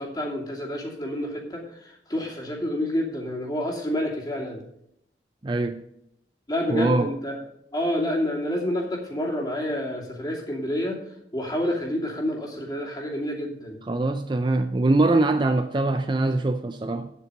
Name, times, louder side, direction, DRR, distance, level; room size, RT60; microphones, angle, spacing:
voice 1, 0.0-4.6 6.5-7.4 7.7-11.0 11.3-13.8, left 1 dB, 25° left, 2.5 m, -28 dB
voice 2, 5.4-5.8 6.7-7.1 13.9-17.1, right 2 dB, 25° right, 0.4 m, -23 dB
9.4 x 8.2 x 5.4 m
head